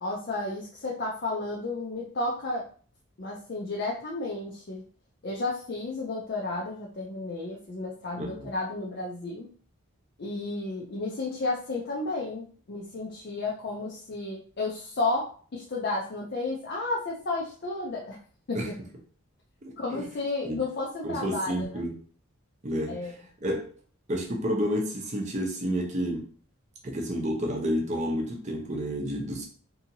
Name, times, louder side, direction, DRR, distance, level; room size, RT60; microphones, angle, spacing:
voice 1, 0.0-2.7 3.2-4.8 5.2-9.5 10.2-18.2 18.5-18.7 19.8-21.7 22.9-23.1, left 2 dB, 50° left, -3 dB, 0.5 m, -32 dB
voice 2, 8.2-8.5 18.5-18.7 19.6-20.0 20.4-20.6 21.0-21.9 22.6-23.1 23.4-23.7 24.1-26.3 26.8-29.4, equal, 35° right, 0 dB, 0.6 m, -30 dB
2.7 x 2.7 x 2.7 m, 0.43 s
head